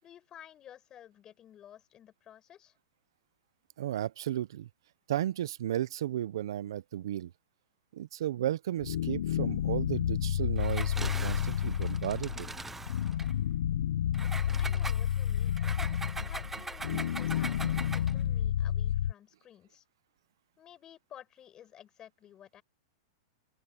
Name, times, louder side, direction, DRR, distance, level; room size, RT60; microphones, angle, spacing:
voice 1, 0.0-2.7 14.6-15.6 16.2-19.8 20.6-22.6, left 10 dB, 25° left, 6.9 m, -54 dB
voice 2, 3.8-4.7 5.1-7.3 7.9-12.5 15.0-15.1 15.9-16.0 16.9-17.0, right 12 dB, 75° right, 0.6 m, -34 dB
sound 1, 8.8-19.1, left 10 dB, 80° left, 0.9 m, -30 dB
Engine, 10.6-13.3 14.1-18.2, right 3 dB, 10° right, 0.4 m, -42 dB
open air
hypercardioid pair, 135°, 2 cm